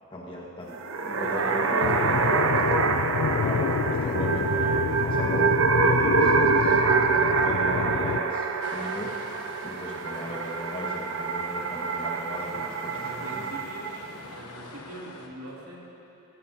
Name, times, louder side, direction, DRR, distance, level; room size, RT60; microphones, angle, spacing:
voice 1, 0.1-2.1 3.4-3.7 4.0-9.1 9.6-12.9 13.2-13.3, equal, 20° left, -3 dB, 1.7 m, -37 dB
sound 1, 0.7-14.1, right 5 dB, 60° right, 0.6 m, -26 dB
voice 2, 1.1-2.3 3.8-4.1 10.1-10.4 12.5-13.9 14.4-15.8, right 1 dB, 85° right, -5 dB, 3.0 m, -43 dB
sound 2, 1.8-8.2, left 6 dB, 65° left, 0.3 m, -28 dB
sound 3, 8.6-15.3, left 2 dB, 90° left, 1.2 m, -47 dB
18.0 x 17.0 x 2.9 m, 2.9 s
head